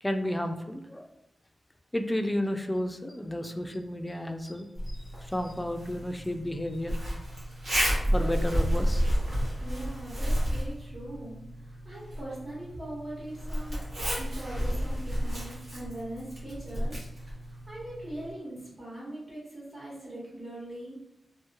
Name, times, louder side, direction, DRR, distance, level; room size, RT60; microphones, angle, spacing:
voice 1, 0.0-1.1 1.9-7.0 8.1-9.1, left 1 dB, 15° left, 6 dB, 0.3 m, -32 dB
Zipper (clothing), 4.8-18.3, equal, 80° right, 1.1 m, -31 dB
voice 2, 9.6-13.8 14.2-21.0, right 1 dB, 60° right, -8 dB, 1.3 m, -41 dB
2.8 x 2.3 x 2.9 m, 0.86 s
cardioid pair, 60°, 0 cm